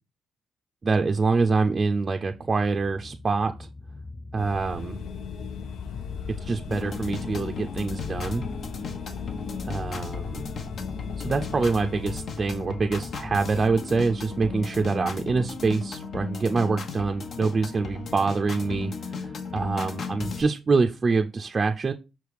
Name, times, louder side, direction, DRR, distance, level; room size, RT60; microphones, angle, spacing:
voice 1, 0.8-3.7 4.3-5.0 6.4-8.4 9.7-10.4 11.2-18.9 19.2-21.9, right 4 dB, 35° right, 4 dB, 0.5 m, -25 dB
sound 1, 1.9-18.3, left 3 dB, 25° left, 0.4 m, -43 dB
sound 2, 4.4-12.2, left 7 dB, 75° left, 0.7 m, -38 dB
sound 3, 6.7-20.4, left 5 dB, 55° left, 1.0 m, -36 dB
6.0 x 3.4 x 4.7 m, 0.28 s
cardioid pair, 90°, 0 cm